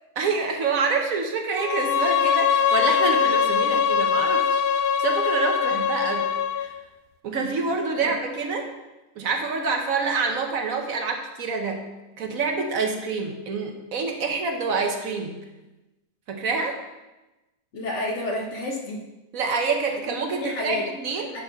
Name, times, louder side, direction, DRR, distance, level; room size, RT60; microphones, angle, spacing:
voice 1, 0.2-6.3 6.6-6.7 7.2-8.7 9.2-11.9 12.2-15.4 16.3-16.8 19.3-21.4, right 4 dB, 65° right, 3 dB, 1.3 m, -27 dB
Bowed string instrument, 1.6-6.7, left 7 dB, 75° left, 1.1 m, -22 dB
voice 2, 17.7-19.0 20.1-20.9 21.3-21.4, left 1 dB, 50° left, 0 dB, 1.4 m, -30 dB
9.3 x 4.2 x 5.2 m, 1.0 s
omnidirectional pair, 1.6 m